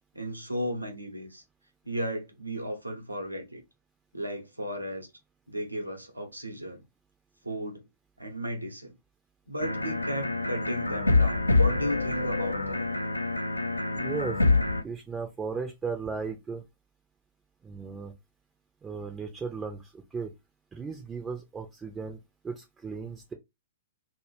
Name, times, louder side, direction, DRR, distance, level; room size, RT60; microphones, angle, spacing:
voice 1, 0.1-1.4 1.8-3.6 4.1-5.1 5.5-6.8 7.4-7.8 8.2-8.9 9.5-12.9, equal, 85° right, 0.7 m, -34 dB
sound 1, 9.6-14.8, left 3 dB, 85° left, 0.3 m, -26 dB
voice 2, 13.9-14.4 14.8-16.6 17.6-18.1 18.8-20.3 20.7-22.2 22.4-23.3, right 5 dB, 15° right, 0.4 m, -36 dB
2.2 x 2.1 x 3.1 m
figure-of-eight pair, 105°, 0 cm